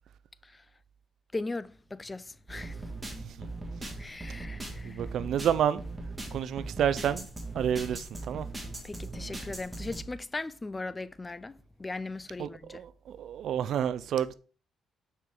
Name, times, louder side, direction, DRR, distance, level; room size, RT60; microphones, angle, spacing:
voice 1, 1.3-2.8 4.0-5.0 8.8-12.8, left 3 dB, 20° left, 0.3 m, -38 dB
sound 1, 2.5-10.0, right 2 dB, 15° right, 1.7 m, -40 dB
voice 2, 4.8-5.8 6.3-7.3 7.5-8.5 12.4-14.3, right 9 dB, 70° right, 0.4 m, -29 dB
5.9 x 4.5 x 3.8 m
cardioid pair, 90°, 0 cm